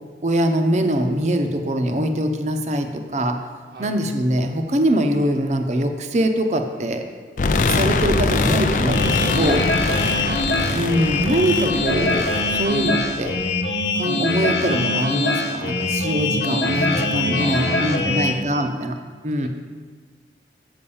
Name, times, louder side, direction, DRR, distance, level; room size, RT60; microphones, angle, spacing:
voice 1, 0.2-3.4 3.8-7.0 7.7-9.7 10.7-13.4 14.0-19.0 19.2-19.5, right 1 dB, 40° right, 5 dB, 0.7 m, -23 dB
sound 1, 7.4-13.5, left 3 dB, 45° left, 0.4 m, -23 dB
sound 2, 8.9-18.3, left 2 dB, 85° left, 1.0 m, -23 dB
voice 2, 9.6-10.2 17.4-18.4 19.4-19.5, right 2 dB, 70° right, 1 dB, 0.8 m, -36 dB
7.0 x 5.8 x 7.0 m, 1.6 s
head